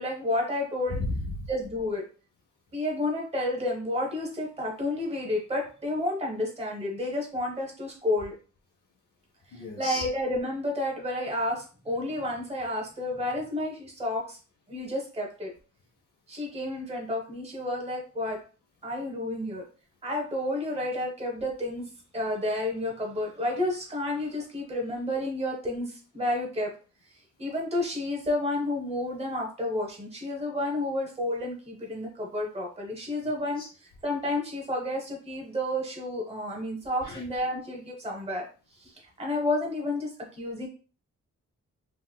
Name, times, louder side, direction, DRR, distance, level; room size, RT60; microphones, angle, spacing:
voice 1, 0.0-1.0 1.5-2.0 2.7-8.3 9.5-14.4 14.7-15.5 16.3-18.4 18.8-19.6 20.0-21.9 22.1-26.7 27.4-33.6 34.0-38.5 38.8-38.9 39.2-40.7, left 1 dB, 20° right, 0 dB, 0.8 m, -30 dB
voice 2, 0.9-1.5 9.5-10.0 33.6-33.7 37.0-37.2, left 2 dB, 85° left, -1 dB, 0.6 m, -33 dB
3.0 x 2.9 x 2.2 m, 0.37 s
wide cardioid pair, 130°, 31 cm